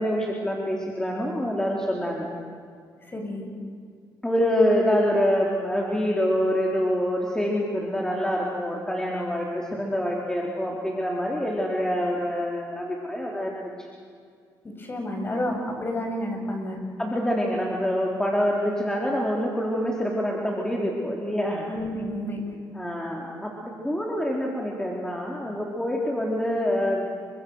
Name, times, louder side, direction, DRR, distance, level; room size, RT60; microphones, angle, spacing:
voice 1, 0.0-2.3 4.2-13.5 17.0-21.7 22.7-27.0, equal, 10° left, -2 dB, 4.2 m, -26 dB
voice 2, 3.0-3.5 14.8-16.8 21.7-22.5, left 1 dB, 30° left, 2 dB, 7.6 m, -30 dB
29.0 x 25.0 x 6.6 m, 2.1 s
cardioid pair, 85°, 7 cm